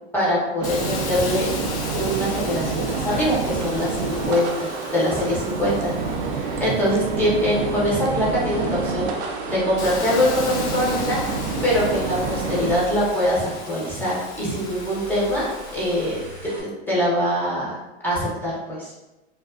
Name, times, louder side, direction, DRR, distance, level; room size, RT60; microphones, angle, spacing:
voice 1, 0.1-1.5 1.9-5.9 6.3-11.2 11.6-17.8 18.0-18.9, equal, 5° left, -8 dB, 0.8 m, -23 dB
Hiss, 0.6-8.2 8.7-16.5, left 5 dB, 90° left, 0.5 m, -38 dB
sound 1, 0.6-12.8, right 4 dB, 50° right, 0.4 m, -28 dB
sound 2, 7.2-16.6, right 1 dB, 30° right, 0.9 m, -41 dB
2.4 x 2.4 x 2.4 m, 1.0 s
hypercardioid pair, 120°, 33 cm